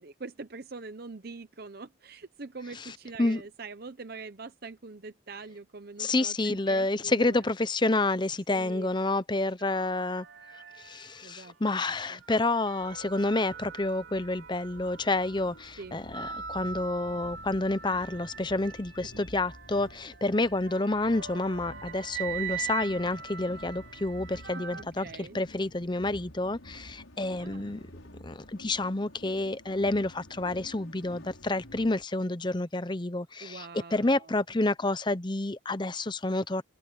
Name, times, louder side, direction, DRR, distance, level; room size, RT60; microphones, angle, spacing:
voice 1, 0.0-7.4 8.5-8.9 11.2-12.2 15.8-16.0 19.0-19.2 24.3-25.4 27.4-27.8 33.4-34.4, right 3 dB, 50° right, 0.8 m, -44 dB
voice 2, 6.0-10.3 10.8-27.8 28.2-36.6, left 2 dB, 25° left, 0.8 m, -29 dB
sound 1, 9.6-11.5 12.0-24.8, right 7 dB, 70° right, 4.8 m, -42 dB
sound 2, 12.6-32.0, left 1 dB, 90° left, 6.4 m, -50 dB
open air
head